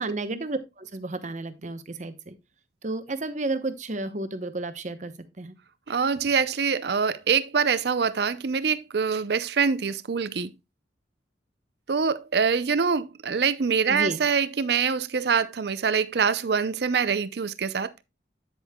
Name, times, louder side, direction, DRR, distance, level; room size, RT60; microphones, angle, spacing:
voice 1, 0.0-2.3 2.8-5.5 13.9-14.2, right 2 dB, 40° right, 0.9 m, -32 dB
voice 2, 5.9-10.5 11.9-17.9, right 6 dB, 65° right, 0.5 m, -25 dB
9.0 x 8.2 x 2.2 m
head